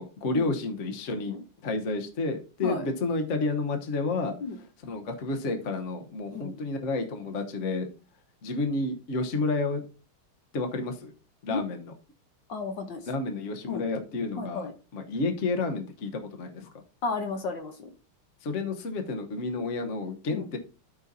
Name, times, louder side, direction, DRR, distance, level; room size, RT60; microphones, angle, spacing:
voice 1, 0.0-1.4 1.6-4.3 4.8-7.9 8.4-9.8 10.5-11.1 11.4-11.9 13.1-16.7 18.4-20.6, left 3 dB, 45° left, 5 dB, 1.1 m, -30 dB
voice 2, 6.3-6.6 11.5-11.6 12.5-13.1 13.7-13.8 14.4-14.7 17.0-17.9 20.3-20.5, left 3 dB, 60° left, 6 dB, 1.5 m, -33 dB
13.0 x 5.6 x 2.7 m, 0.35 s
omnidirectional pair, 2.4 m